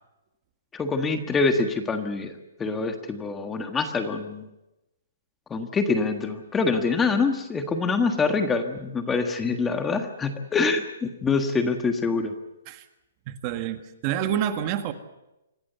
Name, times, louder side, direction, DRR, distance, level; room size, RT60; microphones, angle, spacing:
voice 1, 0.7-4.5 5.5-12.4, left 4 dB, 10° left, 7 dB, 1.5 m, -25 dB
voice 2, 13.3-14.9, right 10 dB, 30° right, 9 dB, 1.7 m, -28 dB
26.0 x 17.5 x 8.2 m, 0.95 s
hypercardioid pair, 165°, 0 cm